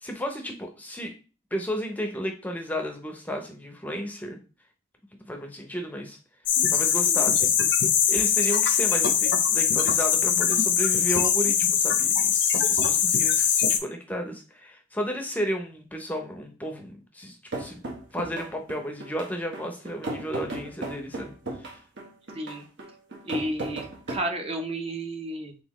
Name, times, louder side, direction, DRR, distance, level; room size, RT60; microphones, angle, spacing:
voice 1, 0.0-1.1 1.5-4.4 5.2-6.2 6.7-7.5 8.1-17.8 18.1-21.3 21.6-21.8, equal, 10° left, 3 dB, 0.6 m, -33 dB
sound 1, 6.5-13.8, left 7 dB, 70° left, 0.6 m, -22 dB
sound 2, 17.5-24.2, right 2 dB, 70° right, 1.2 m, -36 dB
voice 2, 22.3-22.7 23.2-25.6, right 1 dB, 30° right, 4 dB, 0.6 m, -32 dB
4.1 x 3.6 x 3.0 m, 0.33 s
head